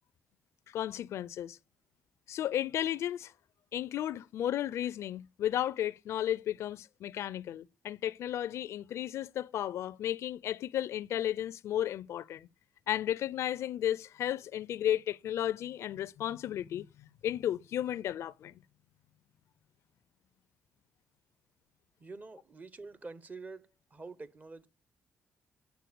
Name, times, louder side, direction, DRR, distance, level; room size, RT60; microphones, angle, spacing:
voice 1, 0.7-1.6 2.3-3.3 3.7-12.5 12.9-18.5, left 11 dB, 75° left, 0.4 m, -34 dB
voice 2, 22.0-24.7, right 3 dB, 35° right, 0.9 m, -47 dB
9.2 x 4.4 x 6.8 m
supercardioid pair, 65°, 5 cm